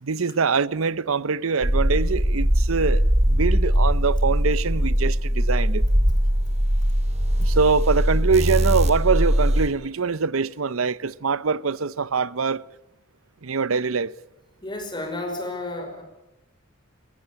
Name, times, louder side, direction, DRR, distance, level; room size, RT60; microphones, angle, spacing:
voice 1, 0.0-5.9 7.4-12.6 13.4-14.1, right 5 dB, 90° right, 0.7 m, -24 dB
sound 1, 1.6-9.7, equal, 30° right, 2.5 m, -21 dB
voice 2, 14.6-16.0, left 2 dB, 20° left, 5.3 m, -31 dB
22.5 x 19.5 x 8.8 m
head